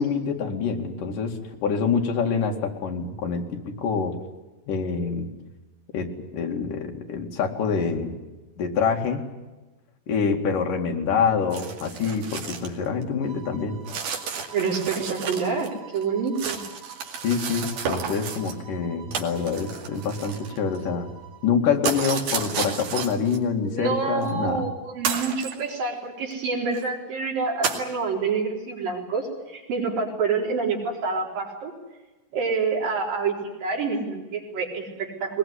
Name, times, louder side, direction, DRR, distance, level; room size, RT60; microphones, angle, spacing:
voice 1, 0.0-4.2 4.7-5.3 5.9-8.2 8.6-9.2 10.1-13.8 17.2-21.1 21.4-24.7, left 6 dB, 65° left, 2 dB, 3.8 m, -26 dB
sound 1, 11.5-12.7 13.0-13.1 13.9-15.7 16.0-18.6 19.1-20.8 21.8-23.4 24.2-24.3 25.1-25.6 26.3-26.4 26.7-26.9 27.6-27.9, right 6 dB, 90° right, 4.2 m, -31 dB
sound 2, 13.2-21.6, right 10 dB, 30° right, 7.9 m, -48 dB
voice 2, 14.5-16.6 23.6-31.7 32.3-35.4, right 4 dB, 70° right, 0 dB, 5.9 m, -27 dB
21.5 x 20.5 x 9.8 m, 1.2 s
omnidirectional pair, 4.2 m